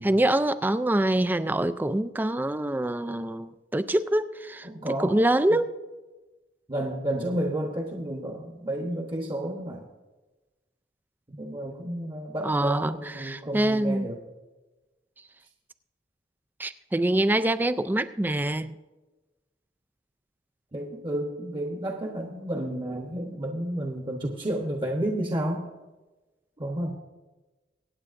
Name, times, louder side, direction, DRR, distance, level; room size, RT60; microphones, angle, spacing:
voice 1, 0.0-4.7 5.0-5.7 12.4-14.1 16.6-18.7, right 1 dB, 10° right, 13 dB, 0.3 m, -25 dB
voice 2, 4.6-5.2 5.5-5.6 6.7-9.8 11.3-14.2 20.7-25.7 26.6-26.9, right 1 dB, 25° right, 1 dB, 1.0 m, -31 dB
24.0 x 8.9 x 2.6 m, 1.2 s
head